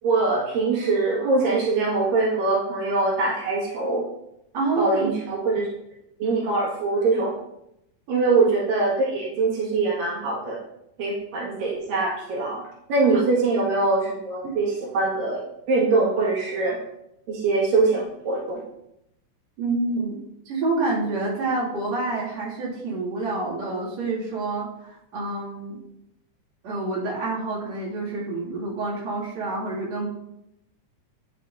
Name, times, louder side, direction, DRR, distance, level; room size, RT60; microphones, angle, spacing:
voice 1, 0.0-4.1 4.8-5.7 6.2-7.3 8.1-10.6 11.0-12.6 12.9-16.8 17.3-18.6, right 3 dB, 90° right, -5 dB, 3.6 m, -23 dB
voice 2, 4.5-5.1 8.1-8.3 19.6-20.2 20.5-25.8 26.6-30.1, right 3 dB, 55° right, -7 dB, 3.7 m, -28 dB
9.5 x 7.3 x 2.7 m, 0.80 s
omnidirectional pair, 3.8 m